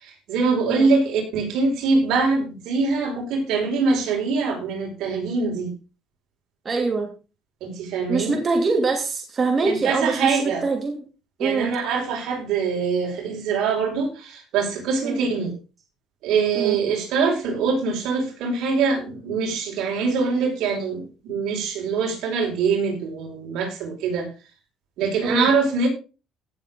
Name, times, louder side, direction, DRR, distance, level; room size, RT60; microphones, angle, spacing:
voice 1, 0.0-5.7 7.6-8.3 9.6-10.6 11.4-15.5 16.2-24.3 25.0-25.9, right 4 dB, 75° right, 1 dB, 5.5 m, -23 dB
voice 2, 6.6-7.1 8.1-10.9 11.4-11.7 15.0-15.3 16.5-16.8 25.2-25.5, right 4 dB, 30° right, 3 dB, 2.7 m, -24 dB
17.0 x 7.5 x 3.8 m, 0.32 s
cardioid pair, 120°, 0 cm